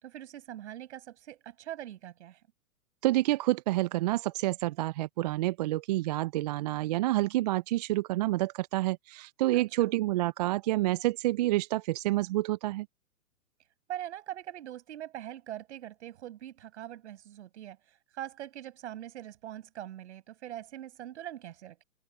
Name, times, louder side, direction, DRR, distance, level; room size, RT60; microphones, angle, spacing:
voice 1, 0.0-2.4 9.5-10.0 13.9-21.8, right 12 dB, 55° right, 6.3 m, -42 dB
voice 2, 3.0-12.9, right 17 dB, 30° right, 0.6 m, -28 dB
figure-of-eight pair, 125°, 42 cm